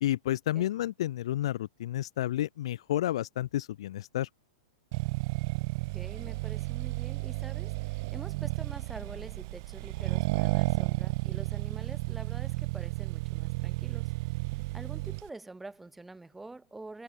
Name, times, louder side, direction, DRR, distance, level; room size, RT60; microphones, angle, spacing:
voice 1, 0.0-4.3, left 13 dB, 60° left, 0.3 m, -31 dB
Accelerating revving vroom, 4.9-15.3, right 24 dB, 40° right, 1.0 m, -32 dB
voice 2, 5.9-14.2 14.7-17.0, right 2 dB, 5° right, 1.6 m, -46 dB
supercardioid pair, 165°, 3 cm